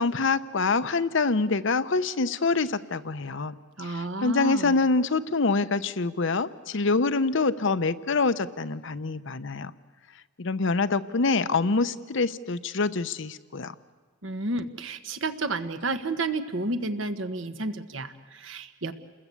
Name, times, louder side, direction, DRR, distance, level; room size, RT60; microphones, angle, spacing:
voice 1, 0.0-9.7 10.4-13.7, left 3 dB, 65° left, 13 dB, 0.8 m, -25 dB
voice 2, 3.8-4.8 14.2-18.9, right 2 dB, 70° right, 9 dB, 1.4 m, -31 dB
29.0 x 21.0 x 8.4 m, 1.5 s
head